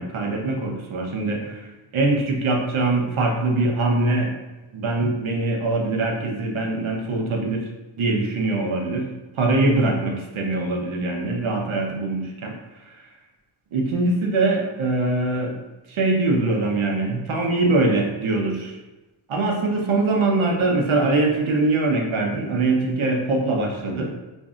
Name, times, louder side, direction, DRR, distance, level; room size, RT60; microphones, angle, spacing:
voice 1, 0.0-4.3 4.7-7.6 8.0-9.1 9.4-12.5 12.8-13.0 13.7-15.6 15.9-18.8 19.3-24.1, right 2 dB, 85° right, 1 dB, 0.8 m, -22 dB
5.2 x 2.6 x 2.4 m, 1.1 s
wide cardioid pair, 170°, 48 cm